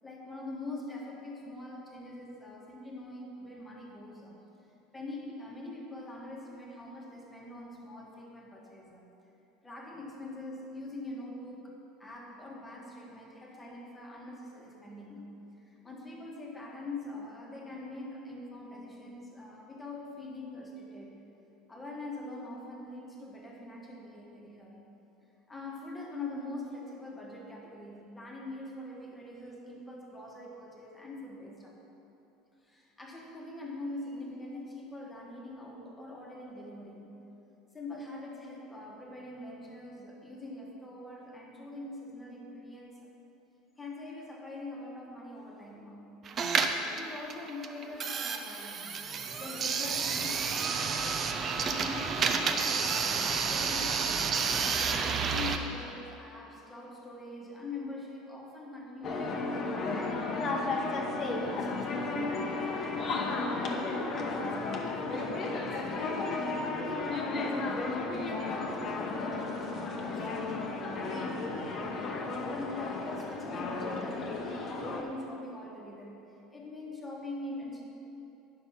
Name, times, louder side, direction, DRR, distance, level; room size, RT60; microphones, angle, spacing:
voice 1, 0.0-4.4 4.9-9.1 9.6-11.7 12.0-15.3 15.6-21.2 21.7-24.8 25.5-31.8 32.6-37.2 37.7-43.1 43.8-46.1 46.8-49.0 49.4-50.4 51.6-60.5 61.2-66.2 66.8-71.8 72.5-76.2 76.5-77.8, left 2 dB, 10° left, -2 dB, 1.3 m, -43 dB
sound 1, 46.2-55.6, right 5 dB, 30° right, 0.6 m, -30 dB
sound 2, 59.0-75.0, left 3 dB, 30° left, 0.9 m, -33 dB
10.0 x 6.0 x 5.7 m, 2.9 s
cardioid pair, 155°, 0 cm